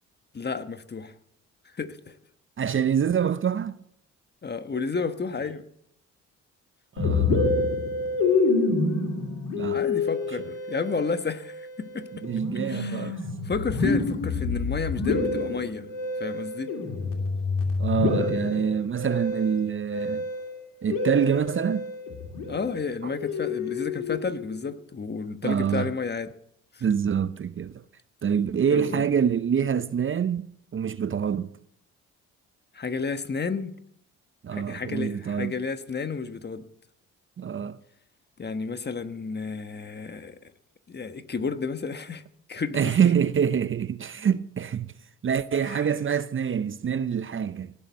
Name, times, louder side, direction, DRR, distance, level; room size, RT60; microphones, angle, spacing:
voice 1, 0.3-1.1 1.7-2.2 4.4-5.6 9.7-12.2 12.7-13.1 13.4-15.9 16.2-16.7 22.5-26.3 26.7-26.8 28.7-29.0 32.7-33.7 34.5-36.6 38.4-40.5 40.9-42.2 42.5-42.9 45.6-45.9, left 5 dB, 30° left, 1.3 m, -31 dB
voice 2, 2.6-3.8 7.0-7.5 9.5-9.8 12.2-13.2 17.8-20.3 20.8-21.9 23.0-23.1 25.4-25.9 26.8-27.8 28.2-31.6 34.4-35.5 37.4-37.8 42.7-44.9 45.2-47.7, right 7 dB, 40° right, 0.7 m, -26 dB
Musical instrument, 7.0-24.6, left 3 dB, 80° left, 2.7 m, -28 dB
18.0 x 6.9 x 8.3 m
supercardioid pair, 60°, 32 cm